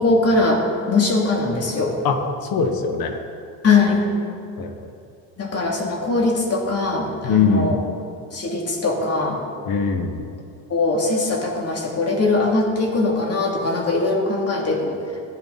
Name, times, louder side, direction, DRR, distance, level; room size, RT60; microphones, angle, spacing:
voice 1, 0.0-1.9 3.6-4.0 5.4-7.8 8.3-9.4 10.7-15.0, left 3 dB, 35° left, -1 dB, 2.9 m, -21 dB
voice 2, 2.0-3.2 4.6-4.9 7.2-7.8 9.6-10.2, left 5 dB, 60° left, 5 dB, 1.6 m, -22 dB
15.0 x 9.7 x 4.2 m, 2.4 s
supercardioid pair, 90°, 41 cm